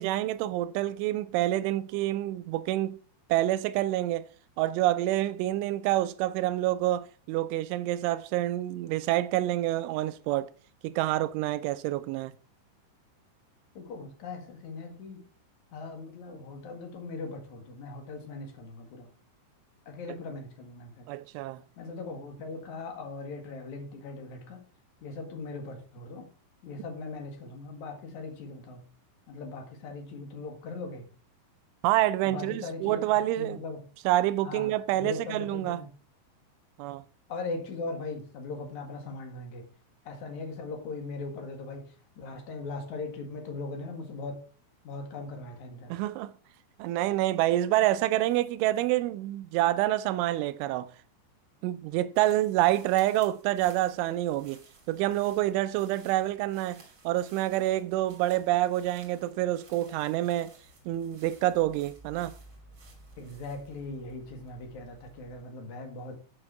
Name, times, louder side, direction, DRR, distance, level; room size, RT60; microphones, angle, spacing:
voice 1, 0.0-3.0 3.3-4.3 4.6-10.5 10.8-12.3 21.1-21.6 31.8-33.6 34.1-35.8 36.8-37.0 45.9-46.3 46.8-50.9 51.6-54.6 54.9-60.5 60.9-62.3, right 15 dB, 85° right, 3.1 m, -27 dB
voice 2, 13.7-15.2 15.7-19.1 19.9-21.1 21.8-24.6 25.0-26.3 26.6-28.9 29.3-31.1 32.2-33.0 33.4-33.8 34.4-35.9 37.3-39.7 40.0-44.5 44.8-45.9 63.2-66.1, left 3 dB, 50° left, 2.6 m, -39 dB
sound 1, 52.1-65.4, right 3 dB, 30° right, 2.6 m, -56 dB
8.8 x 6.5 x 5.8 m
omnidirectional pair, 5.4 m